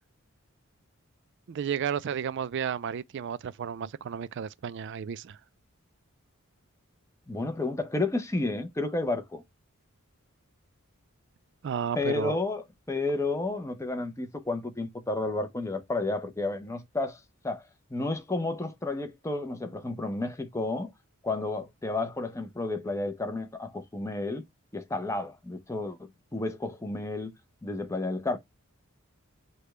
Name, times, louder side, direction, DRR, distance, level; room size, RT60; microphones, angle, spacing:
voice 1, 1.5-5.4 11.6-12.4, right 7 dB, 55° right, 0.3 m, -32 dB
voice 2, 7.3-9.4 11.9-17.6 17.9-20.9 21.2-24.4 24.7-27.3 27.6-28.4, left 2 dB, 15° left, 0.6 m, -31 dB
6.7 x 2.3 x 3.0 m
head